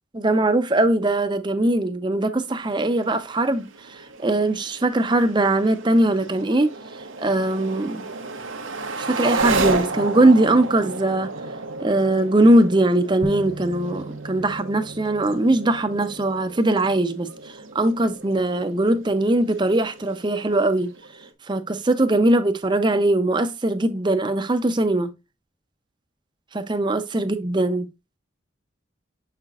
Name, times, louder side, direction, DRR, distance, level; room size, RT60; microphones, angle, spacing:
voice 1, 0.1-3.7 4.2-6.7 7.2-8.0 9.0-11.3 11.8-20.9 21.5-25.1 26.5-27.9, right 1 dB, 25° right, 0.6 m, -20 dB
sound 1, 2.5-21.3, right 3 dB, 80° right, 1.0 m, -33 dB
sound 2, 13.2-17.2, right 1 dB, 55° left, 2.2 m, -38 dB
7.0 x 5.8 x 2.4 m
head